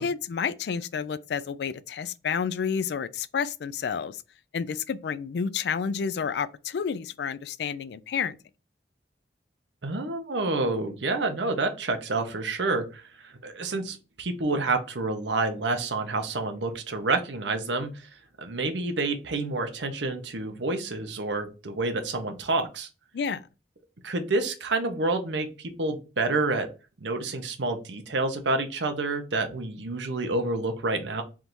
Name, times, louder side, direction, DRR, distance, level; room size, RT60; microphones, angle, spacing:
voice 1, 0.0-4.2 4.5-8.4 23.1-23.5, left 6 dB, 70° left, 0.3 m, -30 dB
voice 2, 9.8-18.1 18.4-22.9 24.0-26.7 27.0-31.2, right 3 dB, 85° right, 0.8 m, -28 dB
3.6 x 2.6 x 4.4 m
head